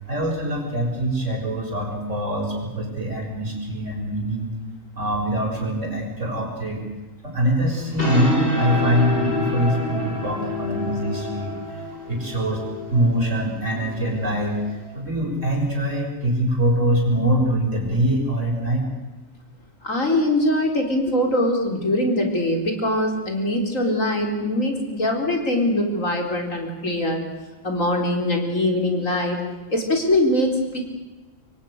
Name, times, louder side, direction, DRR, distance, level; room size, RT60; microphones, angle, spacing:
voice 1, 0.1-4.5 5.0-6.8 7.2-12.6 12.9-14.6 14.9-18.8, equal, 70° right, 1 dB, 6.9 m, -23 dB
sound 1, 7.7-14.9, left 1 dB, 45° left, 5.6 m, -28 dB
voice 2, 19.8-27.2 27.6-29.4 29.7-30.8, left 1 dB, 85° left, 2 dB, 4.7 m, -22 dB
26.5 x 23.0 x 6.6 m, 1.2 s
omnidirectional pair, 1.3 m